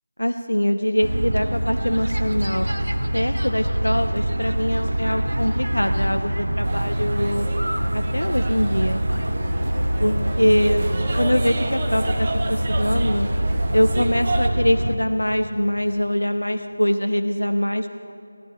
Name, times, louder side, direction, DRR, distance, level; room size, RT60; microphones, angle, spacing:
voice 1, 0.2-2.7 3.1-7.5 7.9-9.0 10.0-10.8 11.2-13.3 13.7-17.9, equal, 85° left, 7 dB, 0.5 m, -23 dB
sound 1, 1.0-15.0, right 1 dB, 75° right, 0.8 m, -24 dB
sound 2, 6.6-14.5, right 2 dB, 30° right, 0.8 m, -33 dB
sound 3, 7.7-13.8, left 2 dB, 55° left, 1.4 m, -44 dB
16.0 x 11.0 x 3.2 m, 2.8 s
figure-of-eight pair, 165°, 0 cm